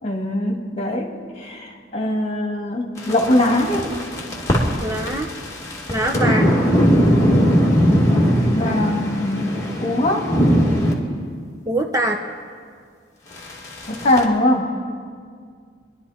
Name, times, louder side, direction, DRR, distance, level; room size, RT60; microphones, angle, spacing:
voice 1, 0.0-1.1 1.4-3.9 8.5-10.3 13.9-14.7, left 1 dB, 35° left, 1 dB, 2.3 m, -21 dB
sound 1, 3.0-10.9 13.4-14.2, equal, 20° left, 2.4 m, -19 dB
voice 2, 4.8-5.3 5.9-6.5 11.7-12.2, right 1 dB, 20° right, 3 dB, 0.8 m, -23 dB
27.0 x 11.5 x 4.4 m, 2.1 s
head